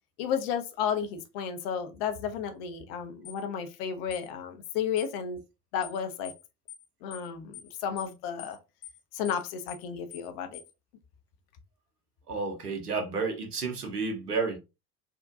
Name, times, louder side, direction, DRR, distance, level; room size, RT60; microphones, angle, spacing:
voice 1, 0.2-5.4 5.7-6.3 7.0-8.6 9.1-10.6, left 7 dB, 40° left, 0.5 m, -32 dB
sound 1, 3.2-3.4 4.1-4.3 5.0-5.1 5.8-6.0 6.2-6.4 6.7-6.8 7.1-7.3 7.5-7.7 8.0-8.1 8.4-8.6 8.8-9.0 9.2-9.4 9.7-9.8 10.1-10.3 10.5-10.7, left 14 dB, 70° left, 1.3 m, -45 dB
voice 2, 12.3-14.6, right 4 dB, 80° right, 0.9 m, -31 dB
3.5 x 2.2 x 2.5 m
figure-of-eight pair, 75°, 46 cm